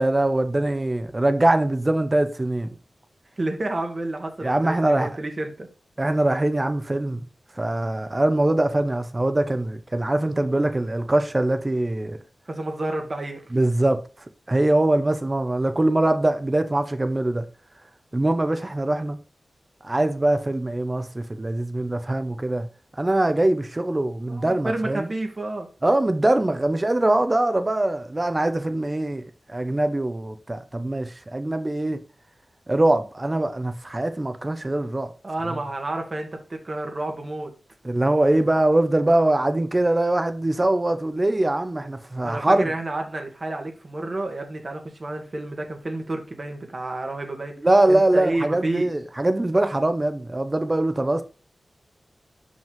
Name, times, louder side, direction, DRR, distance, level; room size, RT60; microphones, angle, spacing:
voice 1, 0.0-2.7 4.4-5.1 6.0-7.3 7.6-12.2 13.5-14.0 14.5-17.5 18.1-19.2 19.8-22.7 23.0-25.1 25.8-32.0 32.7-35.1 35.5-35.6 37.8-42.7 47.6-51.2, right 1 dB, 25° right, 0.9 m, -22 dB
voice 2, 3.4-5.7 12.5-13.4 24.2-25.7 35.2-37.5 42.2-47.6 47.9-48.9, right 2 dB, 45° right, 1.5 m, -30 dB
5.5 x 5.4 x 3.7 m
wide cardioid pair, 65°, 0 cm